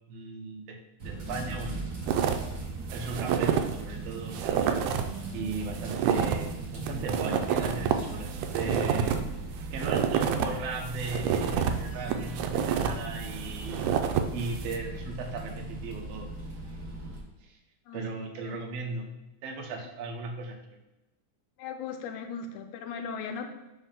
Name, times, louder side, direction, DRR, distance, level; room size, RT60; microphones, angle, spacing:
voice 1, 0.1-0.8 1.0-1.8 2.9-4.8 5.3-9.2 9.7-13.8 14.3-16.3 17.4-17.6 17.9-19.0 19.4-20.8, right 3 dB, 70° right, 1 dB, 1.7 m, -37 dB
sound 1, 1.0-17.2, right 3 dB, 50° right, 1.2 m, -38 dB
sound 2, 2.1-2.5 2.9-3.8 4.1-4.2 4.3-5.1 5.5-10.5 10.8-14.8, right 8 dB, 90° right, 2.0 m, -28 dB
voice 2, 21.6-23.5, left 6 dB, 80° left, 6 dB, 2.0 m, -37 dB
4.9 x 3.5 x 5.5 m, 0.99 s
omnidirectional pair, 3.5 m